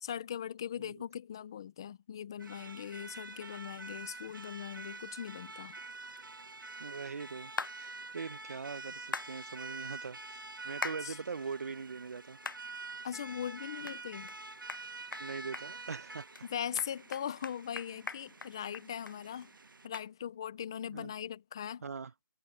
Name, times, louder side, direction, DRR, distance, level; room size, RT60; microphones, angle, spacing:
voice 1, 0.0-5.8 11.0-11.2 13.0-14.3 16.5-19.5 19.8-21.8, left 9 dB, 15° left, 0.4 m, -40 dB
sound 1, 2.4-19.9, right 3 dB, 90° right, 1.6 m, -47 dB
voice 2, 6.8-7.5 7.8-10.4 10.6-12.4 15.2-16.3 20.9-21.1 21.8-22.1, right 5 dB, 45° right, 0.8 m, -41 dB
sound 2, 7.6-7.8 9.1-9.3 10.8-11.0 11.5-11.6 12.4-12.6 13.1-13.2 13.9-14.0 14.3-14.4 14.7-14.8 15.1-15.3 15.5-16.0 16.3-16.4 16.8-19.2 19.4-19.5 19.9-20.1, left 4 dB, 80° left, 1.0 m, -39 dB
hypercardioid pair, 170°, 11 cm